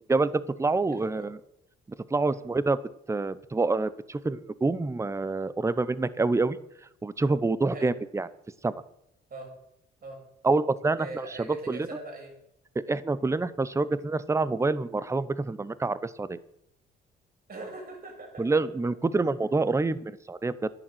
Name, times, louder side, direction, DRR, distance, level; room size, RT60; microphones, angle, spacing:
voice 1, 0.1-1.4 2.1-2.8 3.1-6.6 7.0-8.3 8.6-8.7 10.4-11.9 12.8-16.4 18.4-20.7, right 3 dB, 15° right, 17 dB, 0.7 m, -27 dB
voice 2, 11.0-12.3 17.5-18.5, right 2 dB, 50° right, 1 dB, 6.2 m, -41 dB
11.0 x 9.1 x 7.9 m, 0.78 s
cardioid pair, 90°, 20 cm